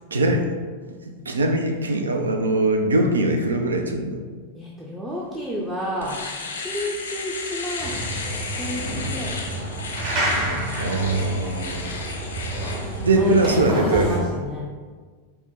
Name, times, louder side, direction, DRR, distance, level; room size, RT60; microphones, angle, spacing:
voice 1, 0.1-0.5 1.0-4.2 10.3-12.0 13.0-14.2, right 2 dB, 70° right, 4 dB, 0.4 m, -22 dB
voice 2, 4.5-6.2 6.6-9.8 13.1-13.5 13.8-14.7, equal, 10° right, -5 dB, 0.5 m, -30 dB
Domestic sounds home sounds, 5.3-5.4 5.8-13.6, left 4 dB, 70° left, 0.5 m, -34 dB
sound 1, 7.8-14.2, right 1 dB, 40° right, 1.2 m, -28 dB
4.3 x 2.1 x 3.6 m, 1.5 s
figure-of-eight pair, 90°, 0 cm